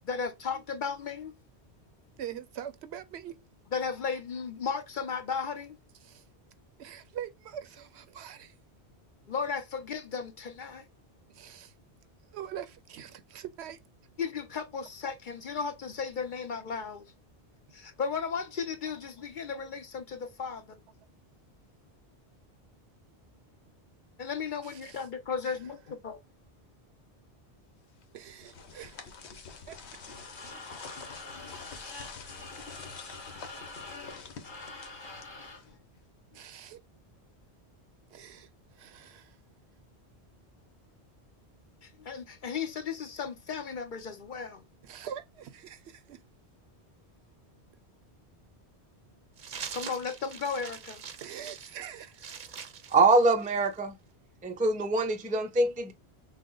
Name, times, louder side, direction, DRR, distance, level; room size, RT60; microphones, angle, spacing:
voice 1, 0.0-1.3 3.7-5.8 9.3-10.9 14.2-17.1 17.7-20.8 24.2-26.2 33.4-33.5 35.2-35.3 35.7-35.8 41.8-44.6 49.5-51.0, left 6 dB, 50° left, 0.8 m, -35 dB
voice 2, 2.1-3.4 6.0-6.2 6.8-8.6 11.3-11.7 12.3-13.8 24.6-25.1 25.4-25.6 28.1-29.1 29.7-30.0 30.5-30.6 36.3-36.8 38.1-39.4 44.8-46.2 51.2-52.4, right 9 dB, 80° right, 0.9 m, -43 dB
sound 1, 28.0-35.8, left 5 dB, 80° left, 1.2 m, -47 dB
sound 2, 29.9-35.7, left 2 dB, 25° left, 1.3 m, -46 dB
sound 3, 49.4-53.8, right 7 dB, 50° right, 0.7 m, -43 dB
voice 3, 52.9-54.0 54.4-55.9, right 3 dB, 10° right, 0.3 m, -24 dB
6.3 x 2.1 x 3.8 m
omnidirectional pair, 1.1 m